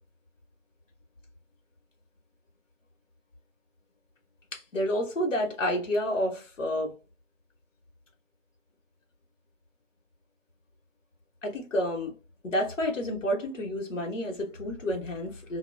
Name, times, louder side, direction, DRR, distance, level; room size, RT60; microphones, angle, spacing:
voice 1, 4.5-7.0 11.4-12.1 12.4-15.6, equal, 70° left, 1.1 m, -30 dB
2.4 x 2.3 x 2.2 m
hypercardioid pair, 170°, 39 cm